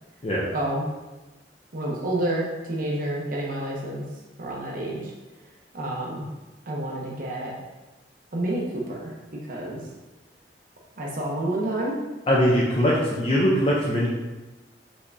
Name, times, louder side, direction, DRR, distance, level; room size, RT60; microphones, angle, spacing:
voice 1, 0.5-0.9 1.7-4.0 4.4-5.1 5.7-6.3 6.7-7.5 8.3-9.1 9.4-9.8 11.0-12.0, right 1 dB, 50° right, -3 dB, 0.7 m, -29 dB
voice 2, 12.3-14.1, equal, 35° left, -4 dB, 0.5 m, -21 dB
5.2 x 3.4 x 2.6 m, 1.1 s
head